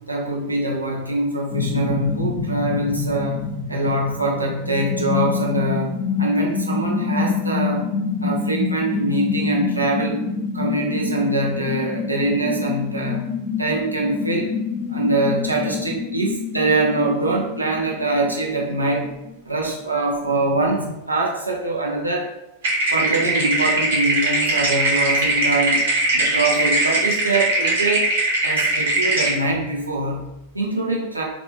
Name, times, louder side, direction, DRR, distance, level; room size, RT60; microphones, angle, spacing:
voice 1, 0.1-5.9 6.2-7.9 8.2-10.3 10.5-13.3 13.6-14.5 14.9-19.1 19.4-22.3 22.9-25.9 26.1-28.1 28.4-31.2, right 2 dB, 85° right, -2 dB, 0.7 m, -23 dB
sound 1, 1.5-19.3 19.7-19.8 20.2-20.9, left 4 dB, 35° left, 0.8 m, -27 dB
sound 2, 22.6-29.3, right 2 dB, 60° right, 1.1 m, -20 dB
3.4 x 2.5 x 3.2 m, 0.95 s
figure-of-eight pair, 90°, 0 cm